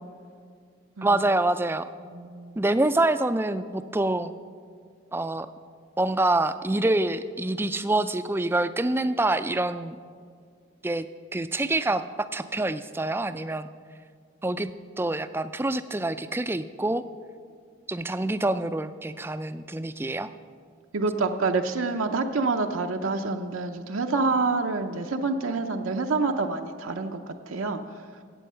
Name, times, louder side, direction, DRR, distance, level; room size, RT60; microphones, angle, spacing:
voice 1, 1.0-1.9 2.6-4.3 5.1-5.5 6.0-10.0 10.8-11.1 11.3-13.7 14.4-14.7 15.0-17.0 17.9-20.3, right 2 dB, 10° right, 12 dB, 0.3 m, -26 dB
voice 2, 2.1-2.6 20.9-27.2 27.5-27.8, right 3 dB, 80° right, 5 dB, 0.6 m, -27 dB
15.5 x 8.4 x 5.6 m, 2.1 s
head